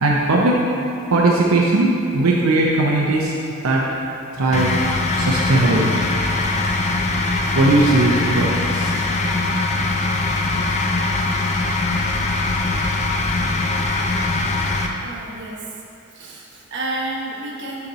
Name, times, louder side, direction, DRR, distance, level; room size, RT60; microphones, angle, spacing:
voice 1, 0.0-0.6 1.1-3.3 3.6-3.9 4.3-4.7 5.1-6.1 7.5-9.0, right 2 dB, 80° right, -3 dB, 0.7 m, -18 dB
sound 1, 4.5-14.9, left 2 dB, 30° left, 0.4 m, -21 dB
voice 2, 15.0-15.6 16.1-17.9, right 2 dB, 50° right, -3 dB, 1.0 m, -30 dB
6.6 x 5.9 x 4.1 m, 2.6 s
head